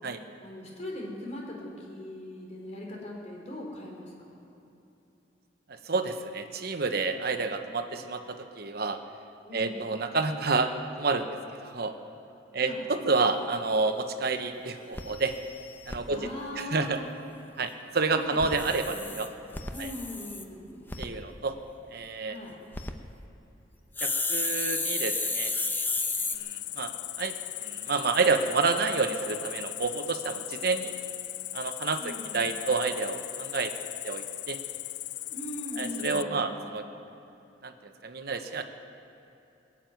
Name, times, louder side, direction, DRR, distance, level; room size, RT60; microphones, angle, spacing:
voice 1, 0.4-4.4 9.4-9.9 12.6-12.8 16.1-17.1 18.1-19.2 19.7-20.9 22.2-22.6 32.0-32.4 35.3-36.6, left 1 dB, 40° left, -2 dB, 3.8 m, -40 dB
voice 2, 5.7-9.0 9.5-10.7 11.0-11.3 11.6-11.9 12.5-15.3 15.9-16.2 16.6-17.0 17.6-19.3 19.8-19.9 21.0-21.5 21.9-22.4 24.0-25.5 26.3-27.3 27.6-30.9 31.5-33.7 34.0-34.6 35.8-36.8 37.6-38.6, right 4 dB, 65° right, 7 dB, 1.0 m, -29 dB
sound 1, 13.8-13.9 14.3-14.4 14.6-14.7 14.9-16.0 18.3-20.4 20.9-21.1 22.5-22.9 24.0-26.4, left 3 dB, 10° left, 0.8 m, -32 dB
Cricket, 25.9-36.2, left 16 dB, 70° left, 0.4 m, -38 dB
20.5 x 7.6 x 9.3 m, 2.9 s
head